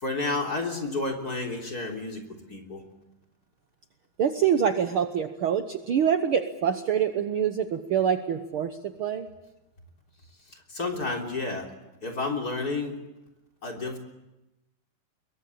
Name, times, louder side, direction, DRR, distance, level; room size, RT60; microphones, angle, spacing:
voice 1, 0.0-2.2 2.5-2.8 10.5-11.7 12.0-13.0 13.6-14.0, left 3 dB, 25° left, 1 dB, 3.7 m, -31 dB
voice 2, 4.2-9.3, right 8 dB, 80° right, 7 dB, 1.2 m, -25 dB
25.0 x 22.0 x 8.5 m, 0.98 s
omnidirectional pair, 4.0 m